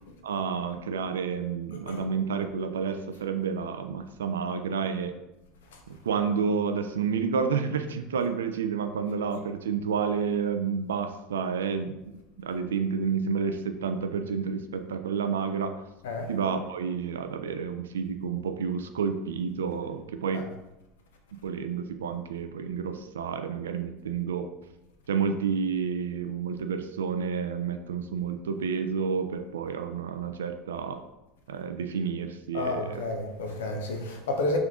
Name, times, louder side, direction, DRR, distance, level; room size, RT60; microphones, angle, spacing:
voice 1, 0.2-5.1 5.9-15.8 16.3-20.5 21.4-24.5 25.1-31.0 31.5-33.0, right 6 dB, 75° right, 0.4 m, -30 dB
voice 2, 1.7-2.0 16.0-16.3 20.3-20.4 32.5-34.6, left 2 dB, 70° left, 0.7 m, -31 dB
3.7 x 3.4 x 3.7 m
figure-of-eight pair, 75°, 0 cm